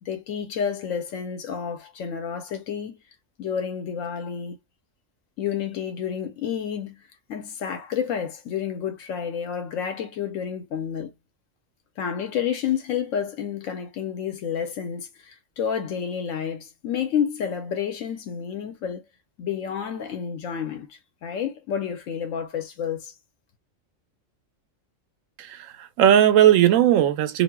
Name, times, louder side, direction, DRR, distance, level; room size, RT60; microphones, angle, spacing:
voice 1, 0.0-3.0 3.4-4.6 5.4-7.0 7.3-11.1 12.0-19.0 19.4-23.1, left 8 dB, 85° left, 1.0 m, -30 dB
voice 2, 25.4-27.4, right 11 dB, 85° right, 1.0 m, -18 dB
4.1 x 2.5 x 2.2 m
omnidirectional pair, 1.3 m